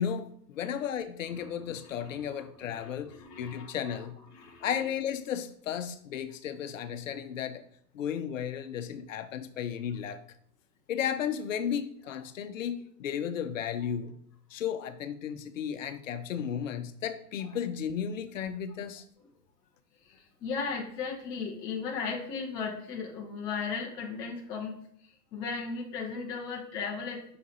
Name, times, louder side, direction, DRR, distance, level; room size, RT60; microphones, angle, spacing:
voice 1, 0.0-4.2 4.6-7.6 7.9-10.2 10.9-14.1 14.5-19.0, left 8 dB, 55° left, 0.7 m, -34 dB
voice 2, 1.8-2.4 2.7-4.1 4.3-4.7 12.1-12.2 20.1-24.8 25.3-27.4, left 5 dB, 10° left, 0.4 m, -36 dB
5.8 x 4.8 x 4.0 m
figure-of-eight pair, 105°, 47 cm